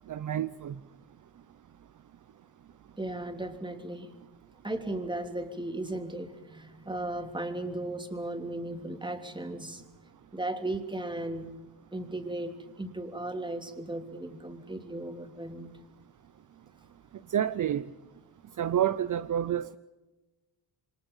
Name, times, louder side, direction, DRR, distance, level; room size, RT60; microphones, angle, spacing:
voice 1, 0.1-0.8 17.3-17.9 18.6-19.8, right 10 dB, 50° right, 0.7 m, -29 dB
voice 2, 3.0-4.1 4.6-9.8 10.3-11.5 11.9-15.7, right 1 dB, 10° right, 3.2 m, -36 dB
27.5 x 25.5 x 5.6 m
cardioid pair, 130°, 40 cm